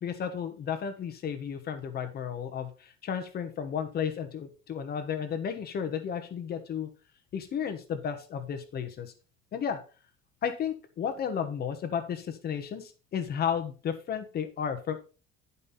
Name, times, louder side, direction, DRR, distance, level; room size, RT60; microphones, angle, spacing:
voice 1, 0.0-6.9 7.3-9.1 9.5-9.8 10.4-15.0, left 7 dB, 35° left, 8 dB, 1.2 m, -33 dB
10.5 x 5.5 x 4.1 m, 0.35 s
cardioid pair, 175°, 29 cm